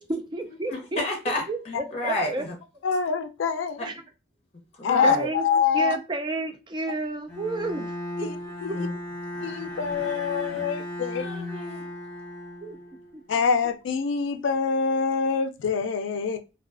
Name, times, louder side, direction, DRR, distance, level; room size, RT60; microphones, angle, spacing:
voice 1, 0.1-1.0 1.5-2.5 3.8-3.9 5.0-5.5 5.7-7.9 8.2-8.3 12.6-12.8 13.1-13.2, right 2 dB, 25° right, 0.3 m, -31 dB
voice 2, 0.7-2.5 3.8-3.9 4.8-5.3 8.7-8.9 11.2-11.9, left 1 dB, 35° left, 0.6 m, -30 dB
voice 3, 2.8-3.9 4.8-6.0 8.2-8.3 8.6-8.7 9.4-11.2 13.3-16.4, left 6 dB, 80° left, 0.4 m, -25 dB
Bowed string instrument, 7.3-13.2, left 1 dB, 5° left, 0.9 m, -36 dB
2.3 x 2.3 x 2.4 m
head